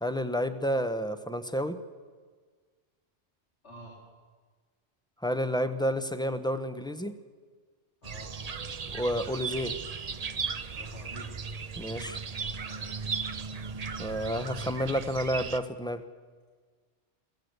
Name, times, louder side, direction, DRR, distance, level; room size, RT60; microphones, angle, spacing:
voice 1, 0.0-1.8 5.2-7.1 8.9-9.7 11.8-12.2 14.0-16.0, equal, 5° left, 9 dB, 0.9 m, -30 dB
voice 2, 8.0-8.3 10.7-11.3 12.7-13.1 14.8-15.2, left 1 dB, 65° left, -4 dB, 4.0 m, -48 dB
sound 1, 8.0-15.6, right 5 dB, 40° right, 0.7 m, -36 dB
22.5 x 15.5 x 8.1 m, 1.5 s
omnidirectional pair, 1.2 m